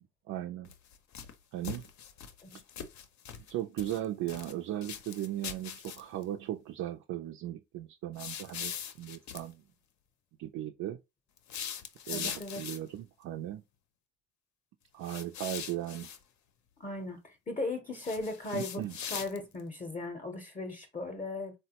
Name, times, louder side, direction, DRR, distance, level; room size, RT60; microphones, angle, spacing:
voice 1, 0.3-0.7 1.5-1.9 3.5-9.6 10.4-11.0 12.1-13.6 14.9-16.1 18.5-19.0, right 13 dB, 70° right, 0.4 m, -37 dB
sound 1, 0.6-1.3 1.6-3.5 3.8-4.5 4.8-6.2 8.2-9.5 11.4-13.0 15.0-16.2 17.9-19.6, left 8 dB, 70° left, 0.6 m, -41 dB
voice 2, 12.1-12.6 16.8-18.8 19.1-21.5, left 2 dB, 25° left, 0.6 m, -37 dB
3.6 x 2.1 x 2.8 m
cardioid pair, 90°, 30 cm